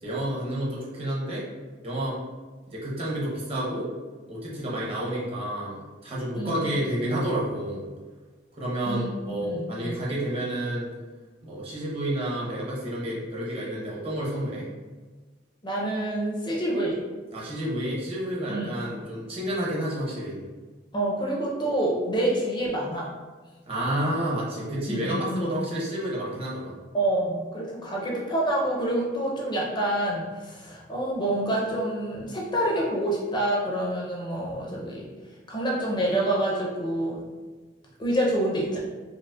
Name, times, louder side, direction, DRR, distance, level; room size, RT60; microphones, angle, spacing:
voice 1, 0.0-1.4 1.8-2.2 2.7-3.9 4.3-7.8 8.6-10.9 11.4-14.7 17.3-20.4 23.7-26.7, right 1 dB, 30° right, -5 dB, 0.8 m, -30 dB
voice 2, 9.4-10.0 15.6-17.0 18.5-18.8 20.9-23.1 24.9-25.8 26.9-35.1 35.5-37.2 38.0-38.8, right 1 dB, 25° left, -3 dB, 0.5 m, -27 dB
4.8 x 2.0 x 2.3 m, 1.3 s
head